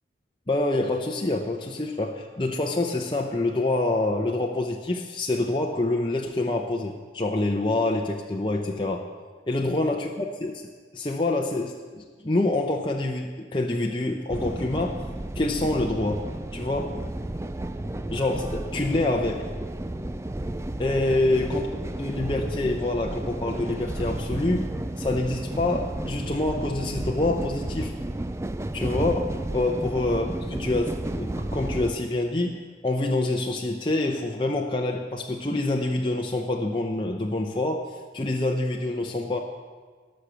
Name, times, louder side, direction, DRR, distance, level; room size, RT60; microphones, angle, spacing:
voice 1, 0.5-9.0 9.5-10.1 10.4-10.5 10.9-15.0 15.3-16.2 16.5-16.9 18.1-19.4 20.8-21.6 22.0-24.7 25.0-27.9 28.7-37.9 38.1-39.4, left 2 dB, 25° left, 1 dB, 0.7 m, -26 dB
sound 1, 14.3-31.9, right 1 dB, 15° right, 0.4 m, -32 dB
18.0 x 6.5 x 6.9 m, 1.5 s
head